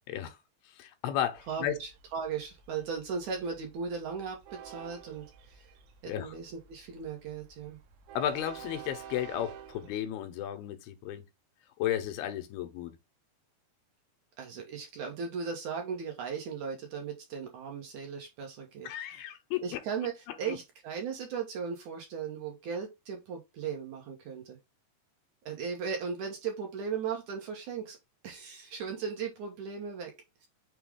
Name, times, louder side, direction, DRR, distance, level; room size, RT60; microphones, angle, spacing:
voice 1, 0.7-1.7 6.1-6.3 8.2-11.2 11.8-13.0 18.8-19.8 20.3-20.6, left 11 dB, 85° left, 2.5 m, -34 dB
Train, 1.4-10.0, right 8 dB, 85° right, 2.5 m, -50 dB
voice 2, 1.5-5.7 6.0-7.8 14.4-18.9 19.6-24.6 25.5-28.0 28.2-30.1 30.4-30.5, right 6 dB, 70° right, 2.0 m, -37 dB
6.2 x 2.3 x 3.4 m
omnidirectional pair, 4.3 m